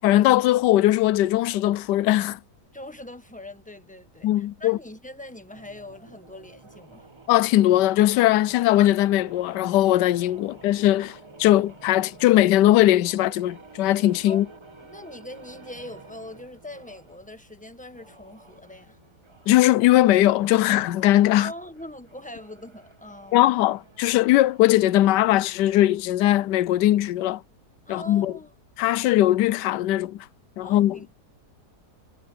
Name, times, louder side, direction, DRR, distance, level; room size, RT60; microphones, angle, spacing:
voice 1, 0.0-2.4 4.2-4.8 7.3-14.5 19.5-21.5 23.3-27.4 27.9-28.3 28.8-30.2 30.6-31.0, left 14 dB, 85° left, 1.2 m, -20 dB
voice 2, 2.7-7.1 14.3-14.4 14.8-19.0 21.3-23.7 27.8-28.5 30.6-31.2, left 1 dB, 5° left, 1.3 m, -42 dB
sound 1, 5.5-17.2 17.9-25.0, right 3 dB, 20° right, 1.2 m, -50 dB
omnidirectional pair, 1.8 m